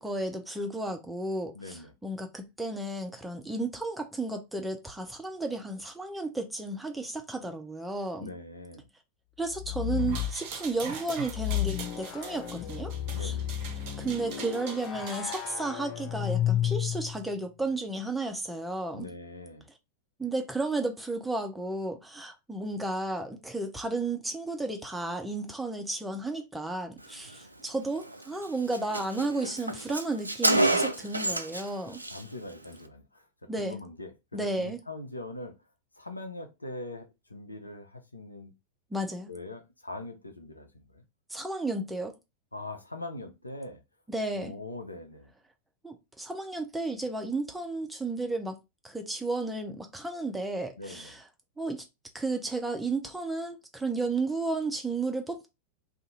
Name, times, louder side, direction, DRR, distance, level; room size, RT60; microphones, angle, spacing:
voice 1, 0.0-8.3 9.4-13.4 14.0-19.1 20.2-32.0 33.5-33.8 34.3-34.8 38.9-39.3 41.3-42.1 44.1-44.5 45.8-48.6 48.8-51.2 51.6-51.8 52.1-55.5, right 2 dB, 5° right, 0.6 m, -33 dB
voice 2, 1.5-1.9 8.2-8.9 13.1-13.5 18.9-19.7 32.1-33.3 33.6-34.1 34.4-35.6 36.0-38.5 39.3-41.0 42.5-43.8 44.3-45.3 50.8-51.2, left 2 dB, 85° left, 0.6 m, -42 dB
sound 1, 9.5-10.4 11.3-17.3, left 12 dB, 35° left, 0.6 m, -32 dB
sound 2, 10.0-15.6, right 6 dB, 45° right, 0.7 m, -42 dB
Car, 28.0-28.2 28.4-28.5 28.7-31.7 31.9-32.2, right 2 dB, 85° right, 0.3 m, -28 dB
2.6 x 2.4 x 4.0 m
figure-of-eight pair, 90°, 0 cm